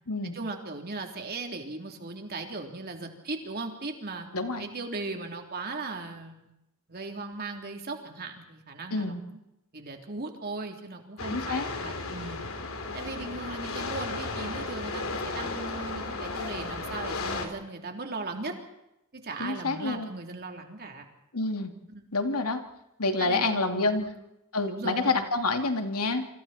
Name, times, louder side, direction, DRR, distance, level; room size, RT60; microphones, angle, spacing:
voice 1, 0.2-4.3 4.6-6.5 6.9-9.4 9.7-12.4 12.9-18.5 19.1-21.1 21.9-22.0 23.2-24.2 24.7-25.1, right 3 dB, 45° right, 3 dB, 3.5 m, -38 dB
voice 2, 4.3-4.6 8.9-9.2 11.3-11.7 19.4-20.1 21.3-21.7 22.1-22.6 23.0-24.1 24.5-26.3, left 3 dB, 80° left, 5 dB, 2.7 m, -28 dB
sound 1, 11.2-17.5, left 3 dB, 65° left, 3.4 m, -34 dB
29.0 x 25.0 x 4.4 m, 0.88 s
head